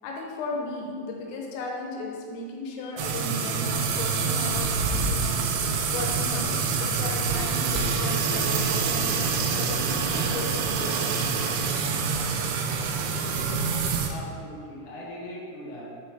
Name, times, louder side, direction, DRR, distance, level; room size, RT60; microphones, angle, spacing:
voice 1, 0.0-5.4 5.9-6.6 6.9-11.3, left 3 dB, 85° left, -1 dB, 3.5 m, -36 dB
sound 1, 3.0-14.1, right 5 dB, 80° right, 2.8 m, -26 dB
voice 2, 14.1-15.8, equal, 65° left, -6 dB, 1.9 m, -40 dB
9.2 x 5.0 x 3.0 m, 2.2 s
omnidirectional pair, 5.7 m